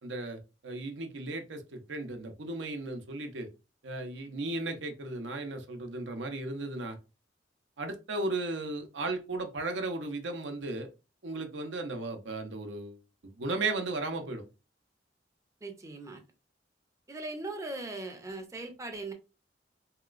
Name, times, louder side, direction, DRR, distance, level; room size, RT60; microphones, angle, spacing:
voice 1, 0.0-3.5 3.8-7.0 7.8-10.9 11.2-14.4, right 2 dB, 80° right, 0.7 m, -35 dB
voice 2, 15.6-16.2 17.1-19.1, right 2 dB, 15° right, 0.5 m, -39 dB
3.0 x 2.9 x 2.4 m
head